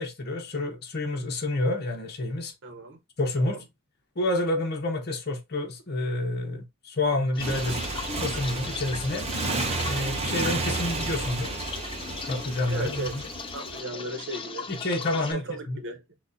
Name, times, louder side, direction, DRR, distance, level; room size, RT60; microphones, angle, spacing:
voice 1, 0.0-2.5 3.2-3.6 4.2-7.8 8.1-9.3 9.8-11.6 12.3-13.2 13.9-14.0 14.7-15.8, left 2 dB, 50° left, 1.0 m, -29 dB
voice 2, 2.6-3.0 3.3-3.6 12.7-13.2 13.5-14.7 15.3-16.0, right 3 dB, 60° right, 0.9 m, -36 dB
sound 1, 7.3-15.3, left 5 dB, 25° left, 0.4 m, -38 dB
Motorcycle, 7.4-13.8, right 3 dB, 30° right, 0.7 m, -32 dB
6.1 x 2.4 x 2.7 m
head